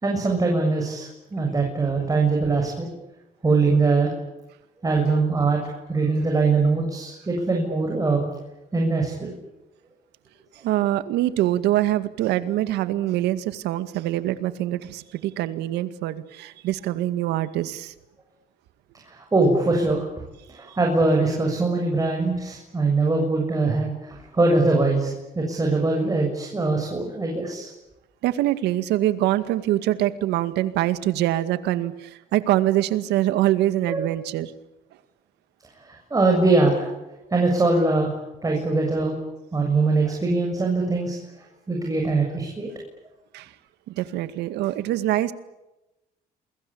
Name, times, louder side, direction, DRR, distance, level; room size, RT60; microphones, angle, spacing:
voice 1, 0.0-2.9 3.4-4.1 4.8-8.3 8.7-9.3 19.1-20.1 20.5-27.7 33.9-34.2 35.8-36.9 37.3-38.1 38.4-39.1 39.5-41.2 41.7-42.7, right 3 dB, 20° right, 1 dB, 7.1 m, -22 dB
voice 2, 10.6-17.9 20.7-20.8 28.2-34.5 43.3-43.5 43.9-45.3, right 14 dB, 85° right, 12 dB, 2.1 m, -24 dB
29.0 x 23.0 x 8.7 m, 0.99 s
cardioid pair, 110°, 17 cm